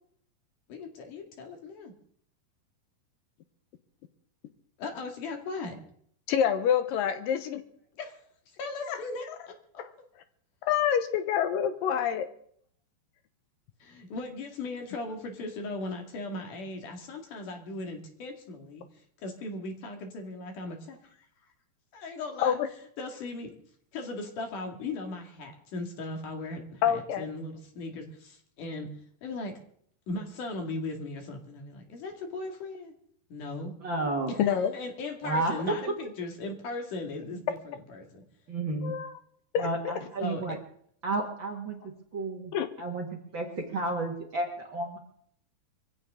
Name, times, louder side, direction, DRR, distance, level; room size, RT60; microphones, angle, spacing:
voice 1, 0.7-1.9 4.8-5.8 8.0-8.1 8.6-9.8 13.8-18.8 19.2-21.2 21.9-23.5 23.9-28.9 29.2-29.6 30.1-32.9 33.3-33.7 34.3-38.2 40.2-40.6, left 2 dB, 55° left, 3 dB, 3.4 m, -38 dB
voice 2, 6.3-7.6 8.9-9.0 9.8-9.9 10.6-12.3 22.4-22.7 26.8-27.3 34.4-34.7 38.8-39.1 39.5-39.9 42.5-42.7, left 9 dB, 75° left, 10 dB, 2.2 m, -27 dB
voice 3, 33.8-34.3 35.2-35.8 38.5-38.9 39.6-40.6 41.0-41.8 42.1-42.5 42.8-43.1 43.3-45.0, right 2 dB, 45° right, 1 dB, 1.6 m, -31 dB
23.0 x 15.5 x 3.7 m, 0.64 s
omnidirectional pair, 4.7 m